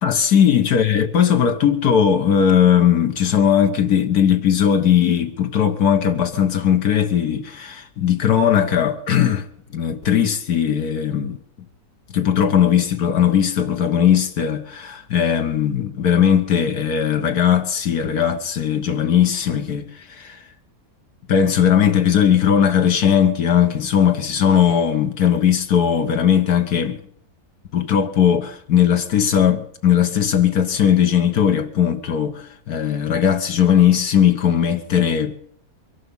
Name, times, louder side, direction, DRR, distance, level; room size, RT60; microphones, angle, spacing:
voice 1, 0.0-9.5 9.7-11.4 12.1-20.4 21.3-27.0 27.7-35.4, left 8 dB, 85° left, 1.8 m, -18 dB
23.0 x 11.0 x 5.4 m
omnidirectional pair, 1.6 m